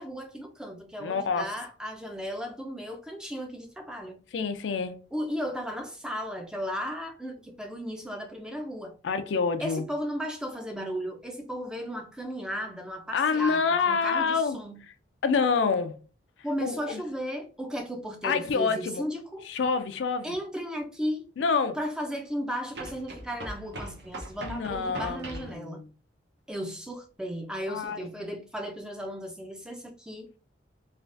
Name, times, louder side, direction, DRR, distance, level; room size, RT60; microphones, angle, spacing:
voice 1, 0.0-4.2 5.1-9.0 9.6-14.8 16.4-19.4 20.2-21.3 21.8-25.8 26.5-30.3, equal, 5° right, 0.4 m, -35 dB
voice 2, 1.0-1.5 4.3-5.0 9.0-9.9 13.1-14.6 15.2-16.0 16.6-17.0 18.2-19.0 19.4-20.4 21.4-21.8 24.4-25.9 27.7-28.3, left 5 dB, 75° left, 0.4 m, -27 dB
sound 1, 20.3-20.4 22.7-25.6, right 1 dB, 65° right, 0.7 m, -40 dB
3.3 x 2.3 x 2.5 m
head